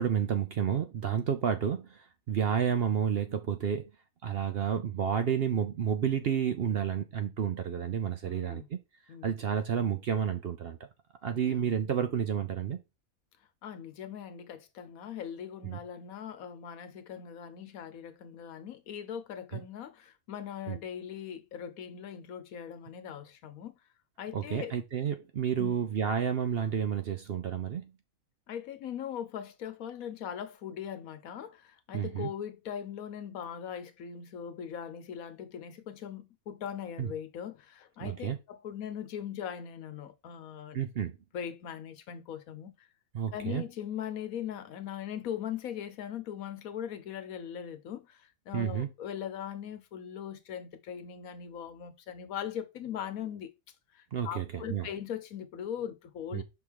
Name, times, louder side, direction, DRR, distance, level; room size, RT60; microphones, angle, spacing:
voice 1, 0.0-3.9 4.2-8.8 9.2-10.8 11.2-12.8 15.6-15.8 19.5-19.6 20.7-20.8 24.3-27.9 31.9-32.3 37.0-37.1 38.0-38.4 40.7-41.2 43.1-43.6 48.5-48.9 54.1-54.9 56.3-56.4, right 8 dB, 60° right, 0.7 m, -30 dB
voice 2, 8.3-8.7 9.1-9.3 11.3-11.7 13.6-23.7 24.2-24.8 25.6-25.8 28.5-40.8 41.3-42.9 43.3-53.5 53.9-56.4, left 9 dB, 75° left, 1.2 m, -40 dB
5.7 x 3.6 x 4.6 m
omnidirectional pair, 1.5 m